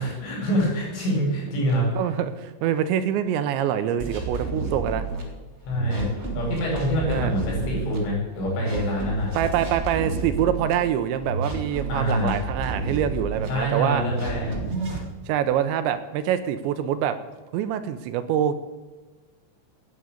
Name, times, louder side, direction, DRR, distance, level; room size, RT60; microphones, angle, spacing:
voice 1, 0.0-2.0 5.7-6.1 6.4-9.4 11.9-12.4 13.5-14.5, equal, 85° left, -1 dB, 7.5 m, -25 dB
voice 2, 2.0-5.1 7.1-7.3 9.4-14.1 15.3-17.2 17.5-18.6, right 10 dB, 80° right, 11 dB, 2.8 m, -25 dB
sound 1, 4.0-5.2 5.7-8.0 8.5-10.7 11.2-13.5 14.0-15.0, right 3 dB, 30° right, 1.3 m, -30 dB
11.5 x 9.6 x 8.7 m, 1.2 s
omnidirectional pair, 5.6 m